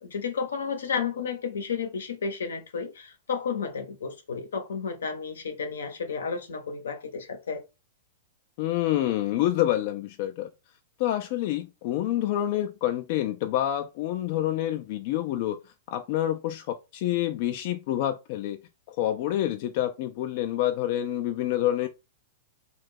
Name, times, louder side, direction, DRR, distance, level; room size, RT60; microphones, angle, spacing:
voice 1, 0.0-7.6, left 6 dB, 85° left, 0.7 m, -32 dB
voice 2, 8.6-10.5 11.0-15.6 15.9-18.6 18.9-21.9, left 13 dB, 55° left, 0.3 m, -27 dB
2.8 x 2.2 x 3.5 m
hypercardioid pair, 115°, 0 cm